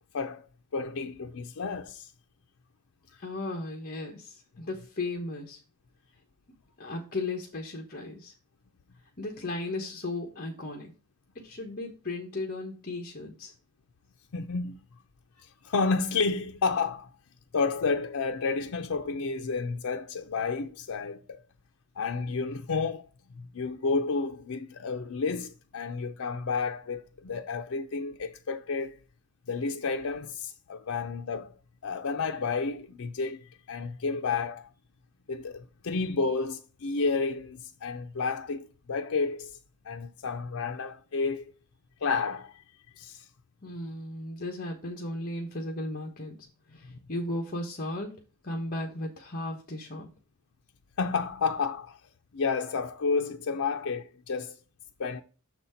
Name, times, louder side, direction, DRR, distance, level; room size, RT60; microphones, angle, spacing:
voice 1, 0.1-2.1 14.3-14.9 15.4-17.1 17.5-21.4 22.0-23.0 23.3-29.0 29.5-31.5 31.8-34.7 35.3-39.6 39.8-41.5 42.0-42.6 43.0-43.3 46.9-47.0 51.0-52.0 52.3-54.6 55.0-55.2, left 4 dB, 70° left, 0.5 m, -31 dB
voice 2, 3.2-5.6 6.8-8.3 9.2-10.9 11.3-13.5 43.6-46.4 46.7-48.1 48.4-50.1, left 2 dB, 40° left, 1.1 m, -35 dB
6.4 x 4.3 x 5.5 m
head